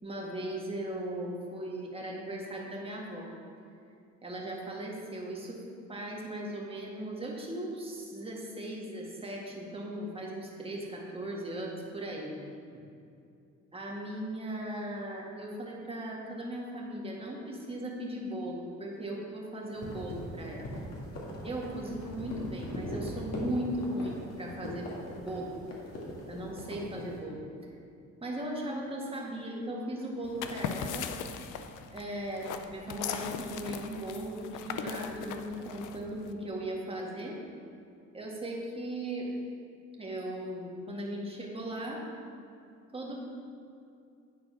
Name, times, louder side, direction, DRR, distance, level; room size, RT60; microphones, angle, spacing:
voice 1, 0.0-3.3 4.2-5.6 5.9-12.3 12.7-12.8 13.7-20.8 21.4-24.9 25.2-25.5 26.3-27.4 28.2-31.1 31.9-37.4 38.1-39.3 40.0-42.0 42.9-43.2, right 1 dB, 20° right, -2 dB, 1.7 m, -37 dB
sound 1, 19.7-27.1, left 1 dB, 55° left, 2.0 m, -40 dB
sound 2, 30.2-36.3, left 7 dB, 85° left, 0.5 m, -39 dB
9.6 x 4.2 x 5.6 m, 2.5 s
cardioid pair, 90°, 30 cm